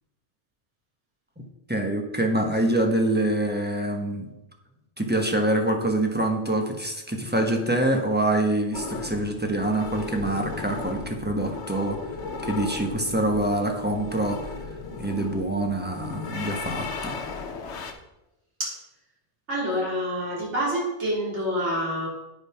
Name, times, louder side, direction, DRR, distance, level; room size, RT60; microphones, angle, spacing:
voice 1, 1.4-4.3 5.0-12.0 12.4-14.4 15.0-17.2, right 1 dB, 10° right, 3 dB, 1.0 m, -25 dB
sound 1, 8.7-17.9, left 4 dB, 70° left, 1.2 m, -36 dB
voice 2, 19.5-22.1, equal, 75° right, -7 dB, 3.9 m, -27 dB
9.4 x 5.2 x 5.6 m, 0.94 s
omnidirectional pair, 1.2 m